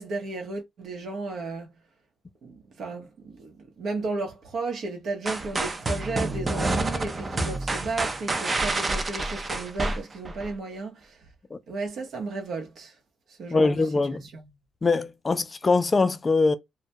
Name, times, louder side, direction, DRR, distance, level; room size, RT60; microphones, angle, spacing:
voice 1, 0.0-1.7 2.4-11.2 11.7-13.0 13.3-14.4, right 3 dB, 65° right, 0.7 m, -34 dB
sound 1, 5.3-10.5, right 2 dB, 30° right, 0.5 m, -28 dB
voice 2, 13.5-14.2 14.8-16.6, left 3 dB, 35° left, 0.3 m, -22 dB
2.1 x 2.1 x 2.7 m
cardioid pair, 80°, 0 cm